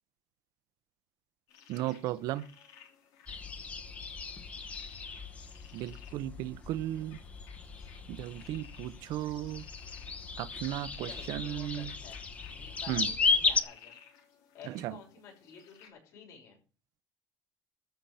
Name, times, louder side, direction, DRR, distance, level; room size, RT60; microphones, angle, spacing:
sound 1, 1.5-15.9, left 8 dB, 85° left, 3.5 m, -57 dB
voice 1, 1.7-2.5 5.7-7.2 8.1-9.6 10.4-11.9 12.9-13.1 14.7-15.0, right 14 dB, 75° right, 0.8 m, -35 dB
sound 2, 3.3-13.6, left 4 dB, 20° left, 1.0 m, -35 dB
voice 2, 11.0-12.2 12.5-14.0 14.5-16.6, left 6 dB, 60° left, 6.4 m, -51 dB
13.5 x 5.8 x 8.4 m
cardioid pair, 155°, 6 cm